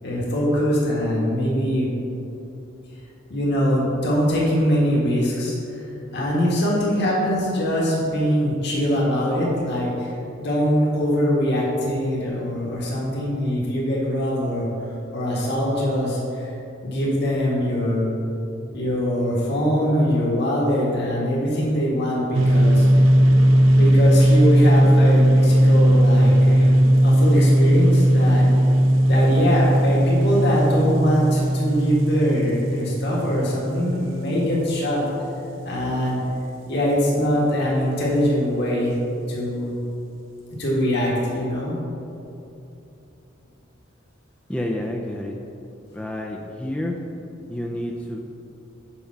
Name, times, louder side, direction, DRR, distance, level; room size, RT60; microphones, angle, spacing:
voice 1, 0.0-1.9 3.3-5.8 6.1-14.7 15.1-16.5 16.8-18.1 18.7-23.1 23.7-28.4 29.1-35.0 35.6-36.2 36.7-39.0 39.3-39.7 40.6-41.8, equal, 60° left, -5 dB, 1.7 m, -22 dB
sound 1, 22.3-35.8, equal, 80° right, 0.6 m, -17 dB
voice 2, 44.5-45.4 45.9-47.0 47.5-48.2, left 1 dB, 5° left, 0 dB, 0.4 m, -29 dB
7.1 x 5.3 x 5.8 m, 2.8 s
head